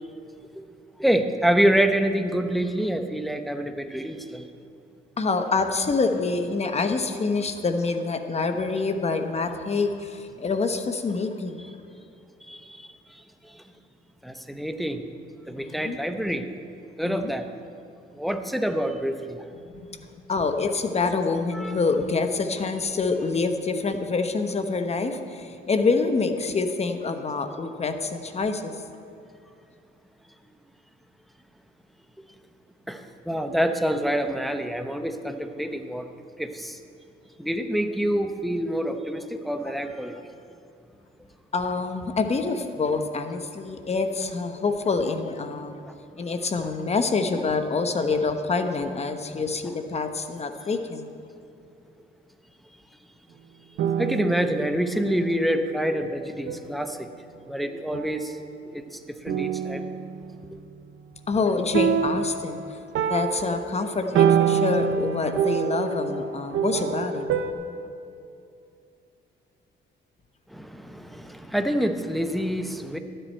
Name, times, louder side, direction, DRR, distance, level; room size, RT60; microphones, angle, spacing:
voice 1, 1.0-4.5 12.4-13.6 14.2-15.0 15.5-16.4 17.0-17.5 18.1-19.5 21.5-21.8 32.9-36.1 36.4-36.8 37.4-40.2 45.9-46.0 54.0-57.1 57.4-58.4 58.6-59.9 70.5-73.0, equal, ahead, 6 dB, 0.8 m, -27 dB
voice 2, 5.2-11.7 15.5-16.0 17.0-17.3 19.7-20.0 20.3-28.7 33.9-34.3 41.5-45.8 46.2-51.1 61.3-62.8 63.1-67.3 67.5-67.6, left 4 dB, 30° left, 7 dB, 0.9 m, -26 dB
sound 1, 53.8-55.6 56.5-56.8 57.9-58.7 59.3-60.5 61.7-67.5, right 7 dB, 80° right, 0.7 m, -26 dB
12.0 x 10.0 x 4.4 m, 2.6 s
cardioid pair, 90°, 20 cm